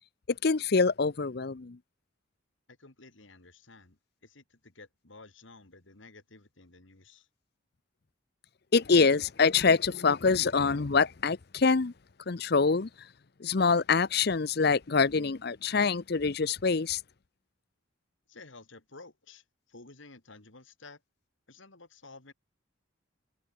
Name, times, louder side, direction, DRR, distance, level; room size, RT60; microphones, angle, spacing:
voice 1, 0.3-1.8 8.7-11.9 12.3-12.9 13.4-17.0, left 4 dB, 50° left, 0.6 m, -25 dB
voice 2, 2.7-7.3 18.3-21.0 21.5-22.3, left 3 dB, 65° left, 2.7 m, -53 dB
head